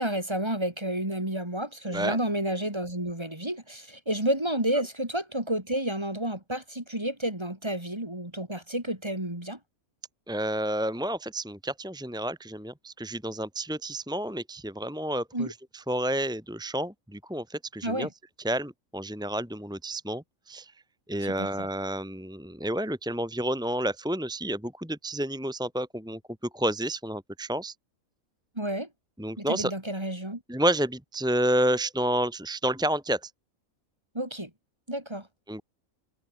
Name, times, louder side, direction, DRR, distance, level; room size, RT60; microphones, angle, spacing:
voice 1, 0.0-9.6 15.3-15.5 17.8-18.1 21.2-21.7 28.6-28.9 29.4-30.4 34.1-34.5 34.9-35.3, right 1 dB, 20° right, 3.1 m, -30 dB
voice 2, 10.3-18.1 18.4-20.7 21.1-26.2 26.5-27.7 29.2-29.7 30.5-33.3 35.5-35.6, right 1 dB, 5° right, 2.3 m, -30 dB
omnidirectional pair, 1.4 m